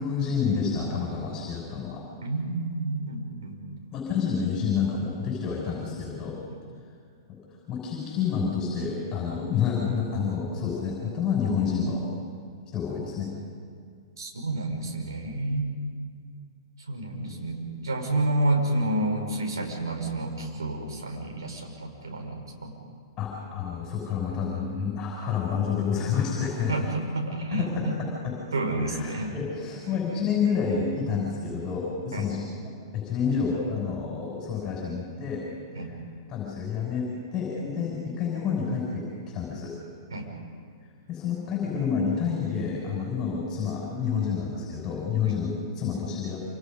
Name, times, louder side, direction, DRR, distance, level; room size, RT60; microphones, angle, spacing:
voice 1, 0.0-2.0 3.9-6.4 7.3-7.4 7.7-12.1 12.7-13.3 23.2-26.8 27.6-27.9 28.9-32.5 32.9-35.4 36.3-37.1 37.3-39.7 41.1-46.4, left 6 dB, 25° left, -2 dB, 6.4 m, -29 dB
voice 2, 2.2-3.6 14.2-15.7 16.9-22.8 26.7-28.0 28.5-29.3 32.1-32.3 35.7-35.9 40.1-40.3 45.2-45.4, right 2 dB, 75° right, 1 dB, 5.2 m, -29 dB
27.5 x 26.5 x 5.4 m, 2.1 s
figure-of-eight pair, 110°, 2 cm